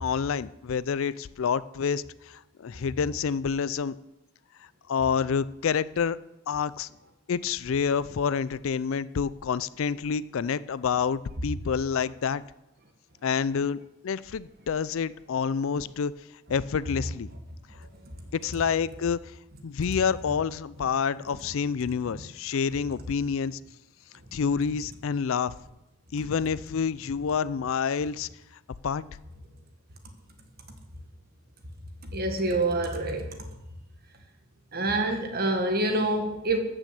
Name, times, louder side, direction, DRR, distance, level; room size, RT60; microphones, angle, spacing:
voice 1, 0.0-4.0 4.9-6.2 6.5-6.9 7.3-12.4 13.2-16.1 16.5-17.3 18.3-19.3 19.6-23.6 24.3-25.5 26.1-28.3 28.8-29.0, left 6 dB, 65° left, 18 dB, 0.4 m, -28 dB
voice 2, 32.1-33.3 34.7-36.6, right 2 dB, 45° right, 5 dB, 1.7 m, -26 dB
13.0 x 6.3 x 7.7 m, 0.94 s
head